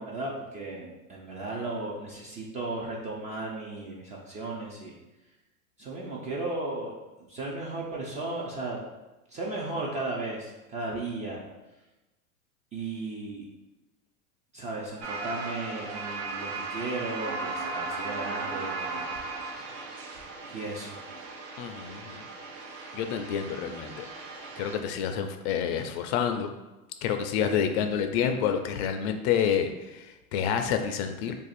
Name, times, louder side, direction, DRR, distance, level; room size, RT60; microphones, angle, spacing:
voice 1, 0.0-4.9 5.8-6.9 7.3-8.8 9.3-11.4 12.7-13.4 14.5-19.1 20.4-21.0, right 2 dB, 20° right, -3 dB, 0.3 m, -35 dB
sound 1, 15.0-24.8, right 3 dB, 65° right, 0.8 m, -37 dB
voice 2, 21.6-22.2 22.9-24.1 24.6-26.5 27.0-31.3, left 8 dB, 50° left, 6 dB, 0.5 m, -28 dB
2.6 x 2.4 x 4.0 m, 1.1 s
hypercardioid pair, 100°, 42 cm